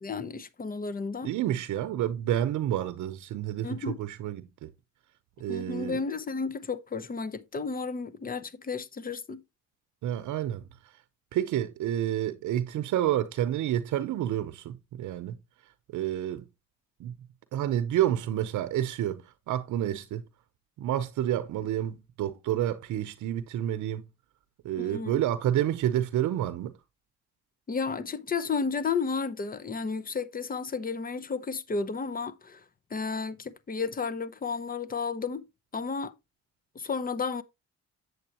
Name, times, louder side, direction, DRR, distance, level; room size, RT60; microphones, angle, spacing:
voice 1, 0.0-1.3 3.6-4.0 5.5-9.4 24.8-25.2 27.7-32.6 32.9-35.4 35.7-36.1 36.7-37.4, left 5 dB, 30° left, 0.8 m, -32 dB
voice 2, 1.2-4.7 5.4-6.0 10.0-10.6 11.3-15.4 15.9-16.4 17.0-17.1 17.5-20.2 20.8-24.0 24.6-26.7, right 11 dB, 80° right, 0.7 m, -29 dB
8.0 x 7.8 x 2.9 m
cardioid pair, 90°, 30 cm